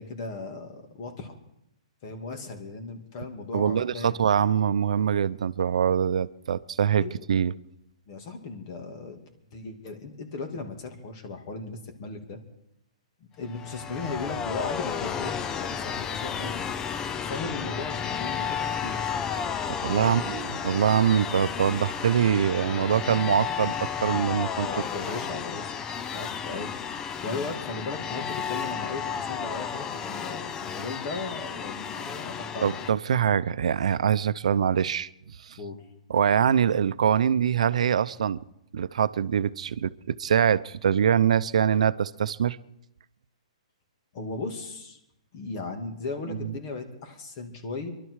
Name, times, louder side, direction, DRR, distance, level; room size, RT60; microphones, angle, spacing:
voice 1, 0.0-1.3 2.0-4.2 7.0-7.1 8.1-9.2 9.5-12.4 13.4-16.6 17.2-19.2 19.9-20.2 24.7-25.7 26.1-26.8 27.2-32.8 34.5-34.6 35.6-35.8 44.1-45.0 45.3-47.9, left 3 dB, 40° left, 5 dB, 2.6 m, -36 dB
voice 2, 3.5-7.5 19.3-23.7 24.0-24.7 32.6-35.1 35.4-35.6 36.1-38.4 38.7-42.6, right 8 dB, 75° right, 15 dB, 0.7 m, -24 dB
sound 1, 13.5-32.9, left 7 dB, 15° left, 0.5 m, -32 dB
23.5 x 12.0 x 4.8 m, 0.81 s
hypercardioid pair, 150°, 4 cm